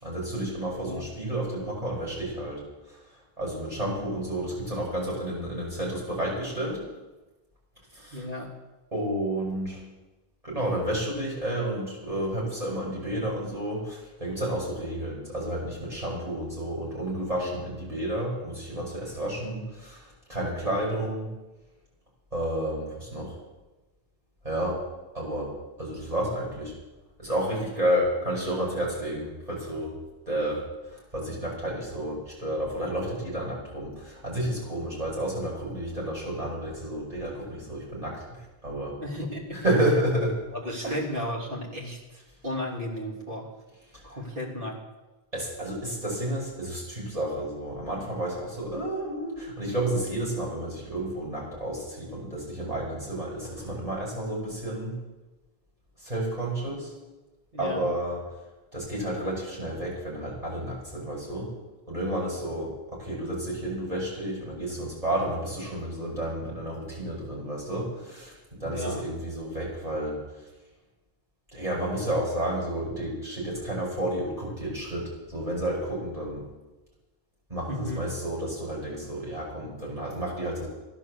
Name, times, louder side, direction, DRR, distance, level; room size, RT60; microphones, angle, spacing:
voice 1, 0.0-6.8 7.9-8.3 8.9-9.8 10.4-21.3 22.3-23.4 24.4-24.8 25.1-25.5 25.8-26.8 27.2-29.9 30.3-39.0 39.5-40.4 40.8-41.0 43.9-44.0 45.3-55.0 56.0-56.9 57.6-58.2 58.7-61.5 61.9-70.2 71.5-76.5 77.5-80.7, right 1 dB, 35° right, -4 dB, 5.9 m, -31 dB
voice 2, 8.1-8.5 39.0-39.6 40.5-43.5 44.0-44.8 57.5-57.8 68.6-69.0 77.7-78.0, left 1 dB, 60° right, -3 dB, 3.5 m, -34 dB
15.5 x 11.0 x 7.3 m, 1.1 s
omnidirectional pair, 1.0 m